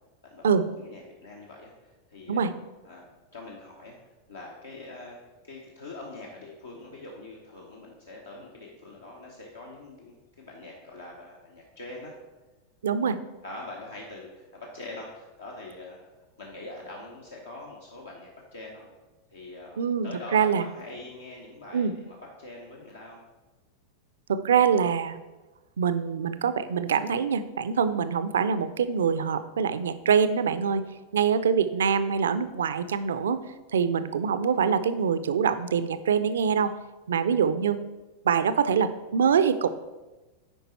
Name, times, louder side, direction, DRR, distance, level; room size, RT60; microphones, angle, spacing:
voice 1, 0.2-2.4 2.8-3.1 3.3-4.0 4.3-5.2 5.4-12.2 13.4-16.1 16.4-18.9 19.3-23.2, left 2 dB, 70° left, -2 dB, 1.0 m, -43 dB
voice 2, 12.8-13.2 19.8-20.7 21.7-21.9 24.3-25.2 25.8-30.8 31.1-33.4 33.7-36.7 37.1-37.8 38.2-39.7, right 7 dB, 65° right, 13 dB, 0.4 m, -24 dB
9.0 x 5.1 x 4.2 m, 1.2 s
figure-of-eight pair, 90°, 0 cm